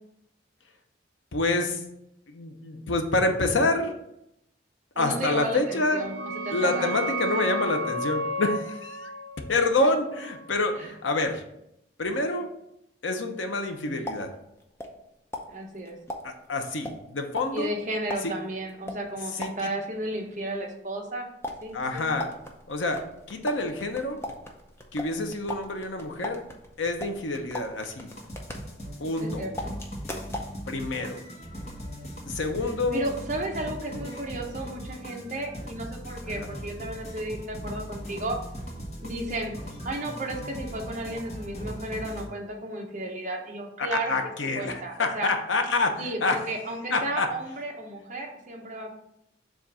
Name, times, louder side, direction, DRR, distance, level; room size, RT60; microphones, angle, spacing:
voice 1, 1.3-1.8 2.3-3.9 5.0-6.1 6.5-9.1 9.5-11.4 12.0-12.5 13.0-14.3 16.2-17.7 18.2-18.4 19.3-19.7 21.7-22.3 22.7-24.2 24.9-26.4 26.8-28.1 29.0-29.4 30.7-31.2 32.3-33.1 36.3-36.5 43.8-46.5 46.9-47.3, left 2 dB, 85° left, 5 dB, 0.8 m, -27 dB
voice 2, 4.9-6.1 6.4-7.0 9.8-9.9 10.8-10.9 15.5-16.0 17.5-21.2 21.6-22.1 29.2-29.7 32.9-38.4 39.0-39.5 39.8-44.1 44.6-45.3 46.0-48.9, right 1 dB, 40° right, 1 dB, 1.0 m, -33 dB
sound 1, 5.6-11.0, right 1 dB, 75° right, 0.5 m, -33 dB
sound 2, 13.6-15.1 15.3-19.9 21.4-29.2 29.6-30.6, left 1 dB, 15° left, 0.6 m, -39 dB
sound 3, 28.1-42.3, equal, 35° left, 1.1 m, -39 dB
7.2 x 2.6 x 5.6 m, 0.80 s
head